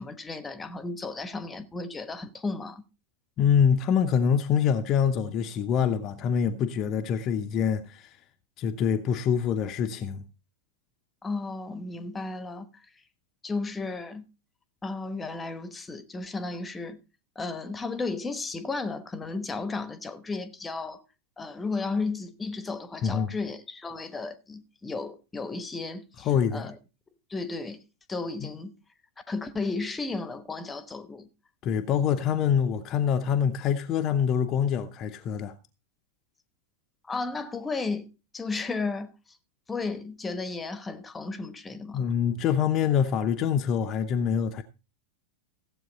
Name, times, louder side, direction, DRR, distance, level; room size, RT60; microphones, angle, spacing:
voice 1, 0.0-2.8 11.2-12.7 13.4-14.3 14.8-17.0 17.4-21.0 21.4-26.3 26.5-26.7 27.3-27.8 28.1-28.7 29.3-31.3 37.1-38.1 38.3-39.1 39.7-42.1, left 3 dB, 15° left, 1.2 m, -34 dB
voice 2, 3.4-8.2 8.6-10.2 23.0-23.4 26.2-26.7 28.4-28.5 31.6-35.6 41.9-44.6, left 7 dB, 35° left, 0.8 m, -25 dB
15.0 x 8.0 x 4.0 m
figure-of-eight pair, 90°, 0 cm